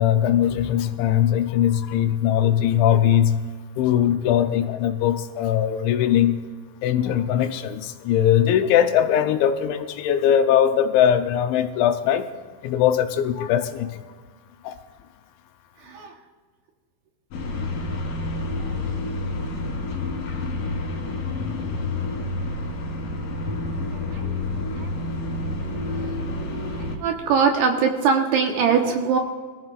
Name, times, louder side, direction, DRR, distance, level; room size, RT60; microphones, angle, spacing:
voice 1, 0.0-3.4 3.8-6.3 6.8-12.3 12.6-13.9 14.6-14.7, left 10 dB, 80° left, 7 dB, 3.0 m, -20 dB
sound 1, 17.3-27.0, left 2 dB, 55° left, 3.6 m, -29 dB
voice 2, 27.0-29.2, right 6 dB, 70° right, 2 dB, 2.8 m, -20 dB
24.5 x 15.5 x 2.4 m, 1.5 s
omnidirectional pair, 5.4 m